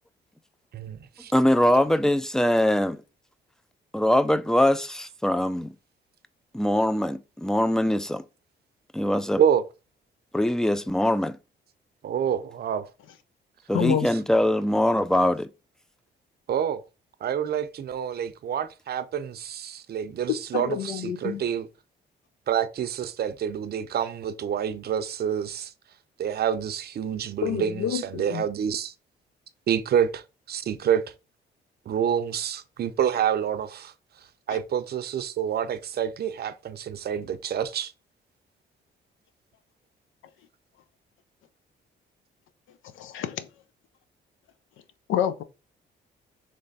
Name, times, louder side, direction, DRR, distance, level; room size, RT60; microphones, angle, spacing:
voice 1, 0.7-1.3 9.4-9.6 12.0-12.9 16.5-16.8 17.2-21.7 22.5-25.7 26.2-28.9 29.7-31.1 31.9-33.9 34.5-37.9, right 8 dB, 55° right, 0.5 m, -27 dB
voice 2, 1.3-3.0 3.9-5.7 6.5-8.3 8.9-9.4 10.3-11.4 13.7-15.5, left 1 dB, 5° left, 0.3 m, -22 dB
voice 3, 13.7-14.1 20.5-21.4 27.4-28.4 34.5-34.6 43.0-43.5 45.1-45.4, left 10 dB, 85° left, 0.5 m, -28 dB
3.3 x 3.3 x 4.0 m
cardioid pair, 90°, 20 cm